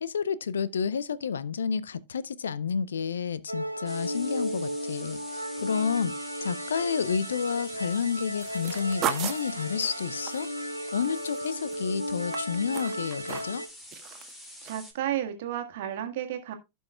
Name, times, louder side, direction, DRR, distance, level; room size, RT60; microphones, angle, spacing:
voice 1, 0.0-6.1 6.4-10.5 10.9-13.6, left 6 dB, 70° left, 0.5 m, -30 dB
sound 1, 3.5-13.7, equal, 90° right, 0.8 m, -35 dB
sound 2, 3.9-14.9, equal, 15° left, 2.6 m, -46 dB
sound 3, 8.4-11.8 12.1-13.6 13.9-14.3 14.7-14.8, right 10 dB, 35° right, 1.1 m, -36 dB
voice 2, 14.6-16.5, right 11 dB, 55° right, 1.6 m, -32 dB
16.0 x 5.5 x 2.3 m
figure-of-eight pair, 90°, 0 cm